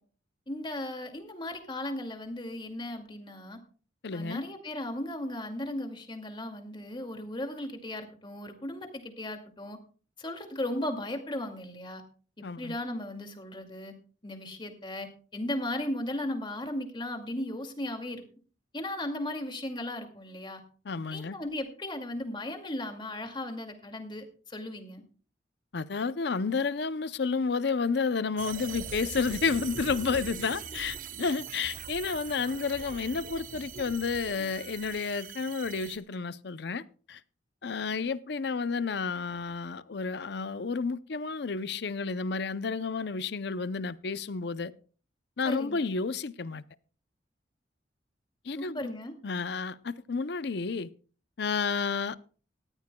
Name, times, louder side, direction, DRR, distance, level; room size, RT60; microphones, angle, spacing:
voice 1, 0.5-3.6 4.1-9.8 10.2-12.0 12.6-13.9 14.2-18.2 18.7-20.6 21.1-25.0 45.4-45.9 48.6-49.1, left 1 dB, 25° left, 2.3 m, -36 dB
voice 2, 4.0-4.4 12.4-12.8 20.8-21.4 25.7-37.2 37.6-44.7 45.4-46.6 48.4-48.9 49.2-50.9 51.4-52.2, left 4 dB, 65° left, 0.6 m, -31 dB
sound 1, 28.4-36.0, right 6 dB, 50° right, 1.0 m, -41 dB
19.0 x 14.5 x 2.3 m
head